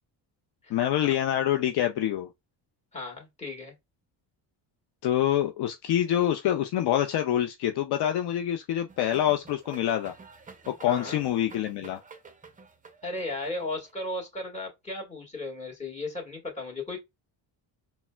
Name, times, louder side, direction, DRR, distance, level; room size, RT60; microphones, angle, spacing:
voice 1, 0.7-2.3 5.0-10.1 10.7-12.0, left 11 dB, 60° left, 0.5 m, -26 dB
voice 2, 2.9-3.7 10.9-11.2 13.0-17.0, left 2 dB, 15° left, 1.7 m, -35 dB
sound 1, 8.9-13.9, right 4 dB, 20° right, 0.5 m, -50 dB
4.1 x 2.1 x 2.2 m
cardioid pair, 100°, 45 cm